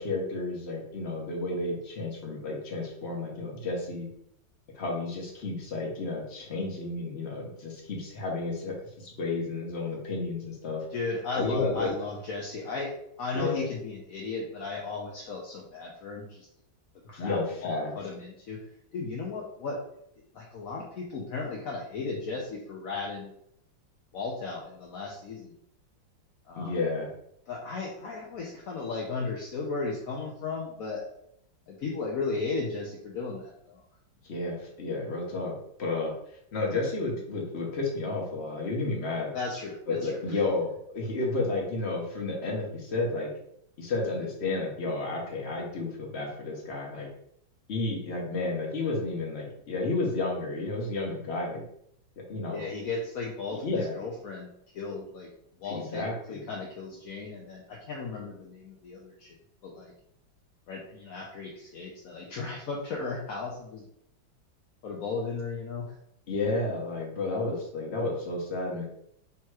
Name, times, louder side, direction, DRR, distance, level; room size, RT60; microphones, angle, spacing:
voice 1, 0.0-4.1 4.7-10.8 11.3-11.9 13.3-13.7 17.1-17.9 26.6-27.1 34.2-36.1 36.5-39.3 39.9-43.3 43.8-47.1 47.7-51.6 52.3-52.6 53.6-54.0 55.7-56.5 66.3-68.8, left 3 dB, 40° left, -1 dB, 1.1 m, -31 dB
voice 2, 10.9-12.9 13.2-16.5 17.1-18.7 18.9-19.8 20.3-23.3 24.1-25.6 26.5-26.7 27.5-31.0 31.7-33.8 39.3-40.4 52.5-54.5 54.7-55.3 55.6-59.4 59.6-59.9 60.7-63.9 64.8-65.9, left 4 dB, 65° left, -2 dB, 0.9 m, -35 dB
3.4 x 3.0 x 4.6 m, 0.72 s
omnidirectional pair, 2.1 m